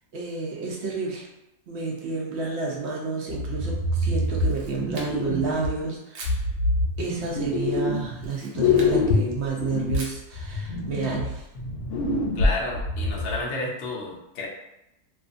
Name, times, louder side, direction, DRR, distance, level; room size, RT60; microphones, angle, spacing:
voice 1, 0.1-1.3 1.7-6.4 7.0-11.4, right 4 dB, 65° right, -2 dB, 0.7 m, -30 dB
sound 1, 3.3-5.8 6.2-8.3 8.5-13.4, left 3 dB, 80° left, 1.1 m, -25 dB
Camera, 4.2-5.4 6.1-6.4 8.1-9.0 9.9-10.3, right 2 dB, 80° right, 1.1 m, -42 dB
voice 2, 12.4-14.5, left 2 dB, 60° left, -3 dB, 0.6 m, -31 dB
2.6 x 2.5 x 2.4 m, 0.90 s
omnidirectional pair, 1.6 m